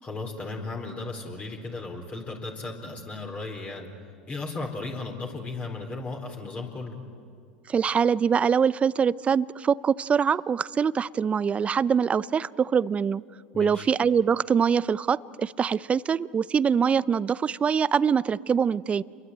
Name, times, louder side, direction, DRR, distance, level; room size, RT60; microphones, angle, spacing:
voice 1, 0.0-3.9 4.3-7.0 13.5-13.9, left 3 dB, 30° left, 1 dB, 4.3 m, -35 dB
voice 2, 7.7-13.2 13.6-19.0, right 7 dB, 25° right, 20 dB, 0.6 m, -24 dB
28.5 x 22.5 x 9.1 m, 2.4 s
hypercardioid pair, 85°, 5 cm